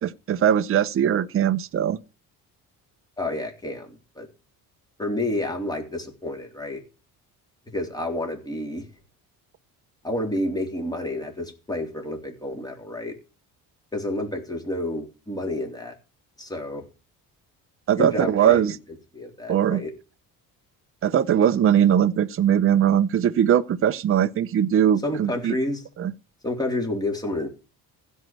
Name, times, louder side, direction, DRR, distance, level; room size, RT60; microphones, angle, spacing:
voice 1, 0.0-2.0 17.9-18.8 19.5-19.8 21.0-25.5 26.0-26.1, right 9 dB, 35° right, 0.8 m, -20 dB
voice 2, 3.2-4.3 5.0-6.8 7.7-8.8 10.0-13.2 13.9-16.0 16.4-16.8 18.0-18.6 19.1-19.9 25.0-25.8 26.4-27.5, left 1 dB, 10° left, 3.7 m, -29 dB
15.5 x 5.5 x 9.3 m
cardioid pair, 145°, 36 cm